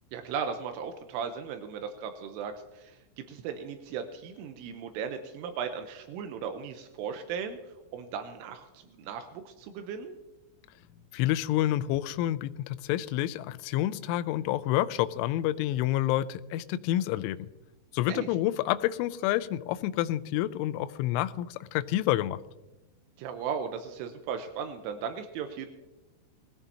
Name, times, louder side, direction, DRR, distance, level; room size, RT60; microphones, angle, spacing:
voice 1, 0.1-7.6 7.9-10.1 18.1-18.3 23.2-25.7, right 7 dB, 85° right, 6 dB, 3.3 m, -37 dB
voice 2, 11.1-17.5 17.9-22.4, left 14 dB, 85° left, 13 dB, 2.9 m, -28 dB
20.0 x 14.0 x 2.8 m, 1.0 s
omnidirectional pair, 5.8 m